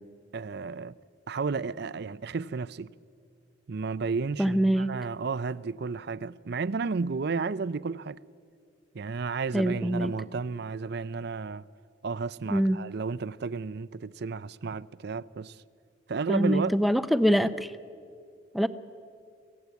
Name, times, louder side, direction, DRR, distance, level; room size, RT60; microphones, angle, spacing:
voice 1, 0.3-1.0 1.3-2.9 3.7-8.2 8.9-11.6 12.0-15.6 16.1-16.8, right 4 dB, 60° right, 0.5 m, -32 dB
voice 2, 4.4-4.9 9.5-10.1 12.5-12.8 16.3-17.7 18.5-18.7, equal, ahead, 0.6 m, -24 dB
24.5 x 16.5 x 8.3 m
head